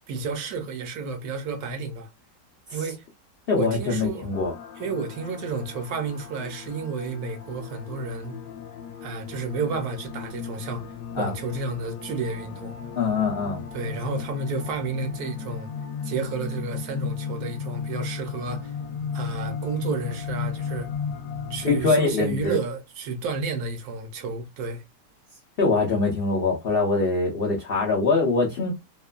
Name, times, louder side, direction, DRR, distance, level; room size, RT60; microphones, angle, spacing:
voice 1, 0.1-2.1 2.7-3.0 3.6-4.3 4.8-8.4 9.0-10.8 11.1-12.7 13.7-15.7 16.0-18.7 19.1-20.9 21.5-24.8, right 4 dB, 70° right, 1.1 m, -31 dB
voice 2, 3.5-4.5 11.2-11.3 13.0-13.6 21.6-22.6 25.6-28.7, left 3 dB, 90° left, 0.5 m, -23 dB
sound 1, 4.3-21.8, left 6 dB, 70° left, 0.8 m, -35 dB
3.0 x 2.1 x 2.3 m
omnidirectional pair, 1.8 m